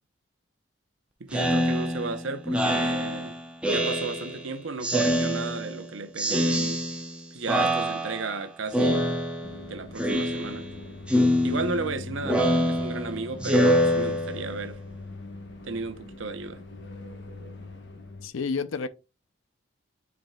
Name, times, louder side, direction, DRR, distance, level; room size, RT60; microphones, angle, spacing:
voice 1, 1.2-3.4 3.7-6.8 7.3-9.2 9.7-10.7 11.4-14.8 15.6-16.6, right 3 dB, 80° right, 0.8 m, -34 dB
Speech synthesizer, 1.3-4.5 4.8-5.8 6.2-7.2 7.5-8.4 8.7-9.6 10.0-10.8 11.1-14.6, equal, 5° right, 0.7 m, -25 dB
sound 1, 9.4-18.3, left 3 dB, 60° left, 1.2 m, -42 dB
voice 2, 18.2-18.9, left 4 dB, 90° left, 0.6 m, -29 dB
8.9 x 4.6 x 2.3 m
head